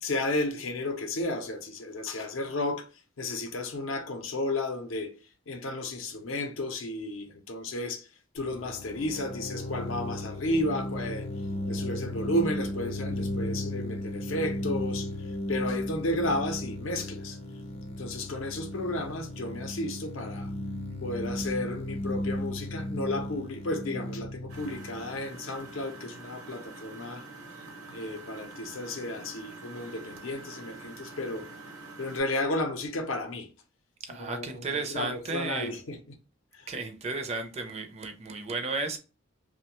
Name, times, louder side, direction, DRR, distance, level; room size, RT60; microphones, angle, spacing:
voice 1, 0.0-2.9 3.2-5.1 5.5-8.1 8.3-11.3 11.7-15.1 15.5-17.4 18.0-20.5 21.0-27.2 27.9-31.5 32.0-33.5 34.1-36.2 36.5-36.7, left 1 dB, 80° left, 0.6 m, -33 dB
sound 1, 8.4-26.0, left 1 dB, 30° left, 0.4 m, -35 dB
Engine, 24.5-32.2, right 3 dB, 75° right, 0.8 m, -46 dB
voice 2, 34.0-35.7 36.7-39.0, right 3 dB, 30° right, 0.4 m, -33 dB
2.9 x 2.1 x 2.9 m
head